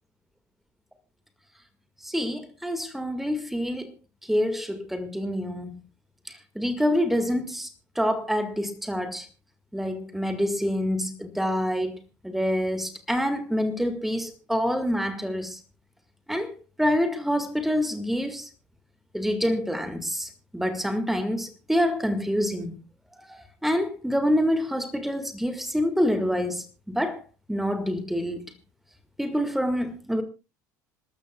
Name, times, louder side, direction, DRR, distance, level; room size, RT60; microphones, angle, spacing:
voice 1, 2.0-3.9 4.2-5.8 6.3-7.7 8.0-9.3 9.7-15.6 16.3-18.5 19.1-22.8 23.3-27.2 27.5-28.5 29.2-30.2, equal, ahead, 1.9 m, -27 dB
27.5 x 12.5 x 2.3 m
figure-of-eight pair, 65°, 10 cm